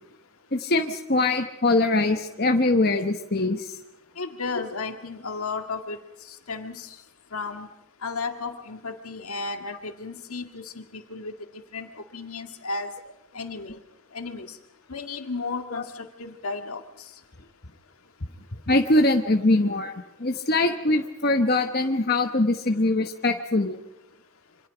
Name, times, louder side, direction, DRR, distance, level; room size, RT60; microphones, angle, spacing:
voice 1, 0.5-3.8 15.7-15.8 18.7-19.9 20.2-23.8, left 2 dB, 45° left, 5 dB, 1.1 m, -22 dB
voice 2, 4.2-6.0 6.2-7.0 7.3-7.7 8.0-11.3 11.7-12.9 13.3-13.8 14.1-14.6 14.9-17.1, left 4 dB, 85° left, 6 dB, 2.0 m, -34 dB
27.5 x 25.0 x 5.1 m, 0.92 s
head